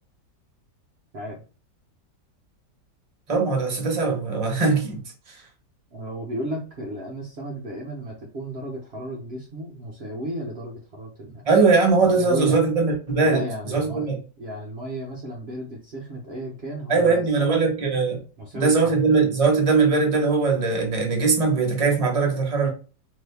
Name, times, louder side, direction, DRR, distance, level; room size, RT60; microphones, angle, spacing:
voice 1, 3.3-5.0 5.3-5.4 11.5-13.4 13.6-14.2 16.9-18.2 18.5-22.7, right 4 dB, 30° right, 0.7 m, -20 dB
voice 2, 5.9-11.4 12.1-12.6 13.2-14.1 14.4-17.7 18.4-19.0, right 1 dB, 70° right, 0.6 m, -34 dB
3.0 x 2.7 x 3.3 m
omnidirectional pair, 2.0 m